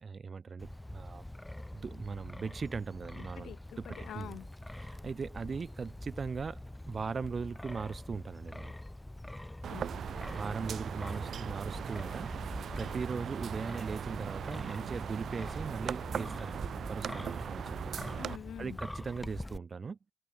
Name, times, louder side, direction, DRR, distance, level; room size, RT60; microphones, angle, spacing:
voice 1, 0.0-1.2 1.7-3.8 4.1-4.4 4.8-8.7 10.3-12.3 12.8-18.0 18.6-20.0, right 5 dB, 35° right, 1.1 m, -39 dB
Wind, 0.6-19.6, left 1 dB, 10° left, 2.7 m, -44 dB
voice 2, 3.2-4.5 9.6-10.1 18.2-18.8, left 10 dB, 70° left, 1.6 m, -46 dB
sound 1, 9.6-18.4, right 8 dB, 55° right, 1.9 m, -39 dB
cardioid pair, 90°, 0 cm